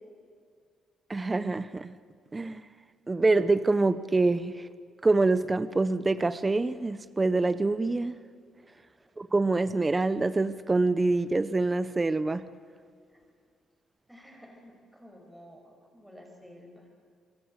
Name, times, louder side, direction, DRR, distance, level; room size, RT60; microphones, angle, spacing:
voice 1, 1.1-1.9 2.3-2.7 3.1-4.7 5.0-8.2 9.2-12.4, right 3 dB, 20° right, 15 dB, 0.9 m, -25 dB
voice 2, 14.1-16.9, equal, 5° right, 1 dB, 6.3 m, -52 dB
26.5 x 21.5 x 8.3 m, 2.1 s
cardioid pair, 90°, 0 cm